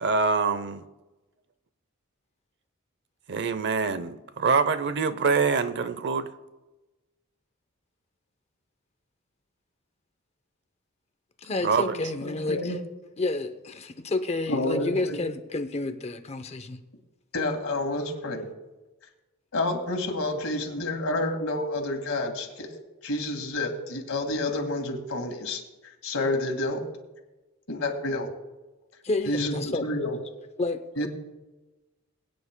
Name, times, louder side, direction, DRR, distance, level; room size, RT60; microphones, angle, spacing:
voice 1, 0.0-0.8 3.3-6.3 11.6-12.0, right 5 dB, 55° right, 13 dB, 0.7 m, -25 dB
voice 2, 11.4-12.8 13.2-16.8 29.0-29.9 30.6-31.1, left 2 dB, 30° left, 9 dB, 0.7 m, -30 dB
voice 3, 12.2-12.8 14.5-15.2 17.3-18.5 19.5-22.7 23.0-25.6 26.0-26.8 27.7-28.3 29.3-30.2 31.0-31.1, left 2 dB, 75° left, 3 dB, 2.0 m, -29 dB
22.0 x 9.6 x 2.2 m, 1.1 s
head